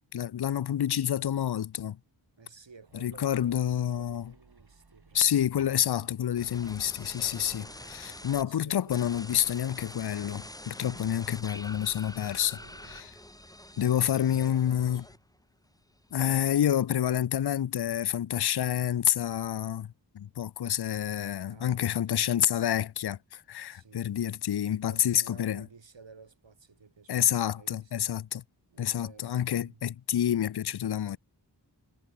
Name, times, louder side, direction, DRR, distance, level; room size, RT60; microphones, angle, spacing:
voice 1, 0.1-2.0 3.0-4.2 5.1-12.6 12.9-13.1 13.8-15.0 16.1-25.7 27.1-28.4 28.8-31.2, left 10 dB, 60° left, 0.6 m, -28 dB
voice 2, 2.4-5.6 7.3-9.5 10.7-11.2 12.5-13.2 13.7-15.2 21.4-22.4 23.7-24.1 24.7-27.9 28.7-29.8, right 4 dB, 85° right, 7.6 m, -54 dB
sound 1, 2.9-7.9, right 3 dB, 60° right, 7.2 m, -59 dB
sound 2, 6.4-8.4 8.9-15.5 15.8-16.3, left 1 dB, 10° left, 1.4 m, -46 dB
wide cardioid pair, 80°, 43 cm